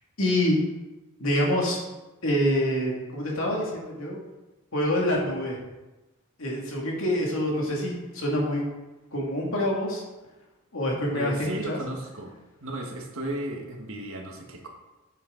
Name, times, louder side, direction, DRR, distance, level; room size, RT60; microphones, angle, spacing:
voice 1, 0.2-0.6 1.2-1.8 2.2-4.2 4.7-5.6 6.4-8.7 9.1-10.0 10.7-11.8, left 1 dB, 65° left, -2 dB, 2.4 m, -26 dB
voice 2, 11.1-12.3 12.6-14.7, right 1 dB, 65° right, 1 dB, 1.6 m, -34 dB
8.9 x 7.9 x 3.9 m, 1.1 s
head